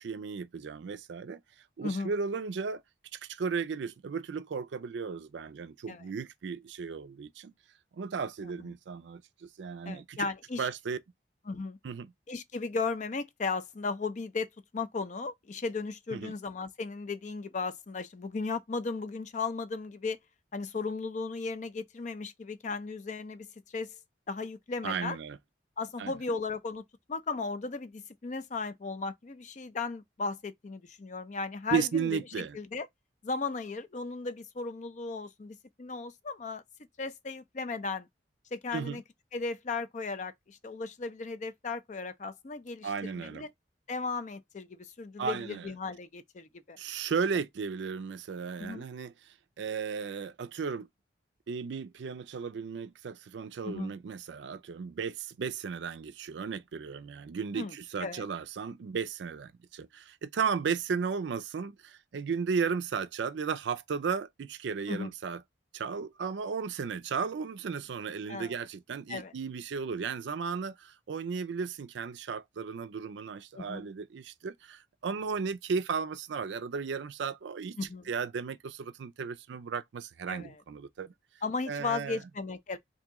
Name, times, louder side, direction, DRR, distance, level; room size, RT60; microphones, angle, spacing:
voice 1, 0.0-1.4 1.8-2.8 3.1-7.5 7.9-10.3 10.6-11.0 11.8-12.1 16.1-16.3 24.8-25.4 26.0-26.1 31.7-32.6 38.7-39.0 42.8-43.5 45.2-45.7 46.8-50.9 51.5-65.4 65.7-77.8 78.1-81.1 81.7-82.2, right 5 dB, 75° right, 0.4 m, -35 dB
voice 2, 9.8-10.7 11.5-11.8 12.3-14.5 14.7-20.2 20.5-23.9 24.3-25.2 25.8-26.8 27.1-32.1 32.4-32.9 33.2-36.6 37.0-38.1 38.5-39.0 39.3-43.5 43.9-46.8 48.6-48.8 53.6-53.9 57.6-57.8 58.0-58.2 64.9-65.1 68.3-68.5 69.1-69.3 73.5-73.9 77.8-78.1 80.3-80.6 81.4-82.8, left 4 dB, 40° left, 0.4 m, -36 dB
2.9 x 2.7 x 3.5 m
head